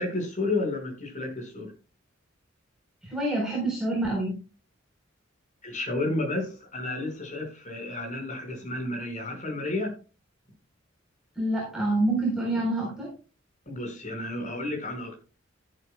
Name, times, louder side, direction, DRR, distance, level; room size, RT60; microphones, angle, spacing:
voice 1, 0.0-1.7 5.6-9.9 13.6-15.2, left 2 dB, 40° left, 2 dB, 4.9 m, -31 dB
voice 2, 3.0-4.4 11.3-13.1, right 1 dB, 5° right, -4 dB, 3.9 m, -27 dB
13.5 x 11.0 x 2.2 m, 0.34 s
head